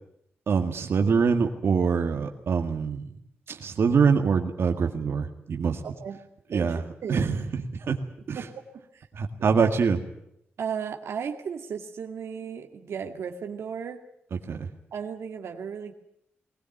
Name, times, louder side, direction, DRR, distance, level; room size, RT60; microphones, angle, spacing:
voice 1, 0.5-3.1 3.5-5.8 6.5-6.8 7.1-8.0 8.3-8.4 9.1-10.0 14.5-14.7, right 5 dB, 65° right, 4 dB, 1.9 m, -24 dB
voice 2, 6.5-7.4 8.4-8.5 8.9-9.1 9.6-9.7 10.6-14.0 14.9-15.9, right 7 dB, 85° right, 4 dB, 2.0 m, -35 dB
20.5 x 19.5 x 9.2 m, 0.75 s
wide cardioid pair, 115°, 4 cm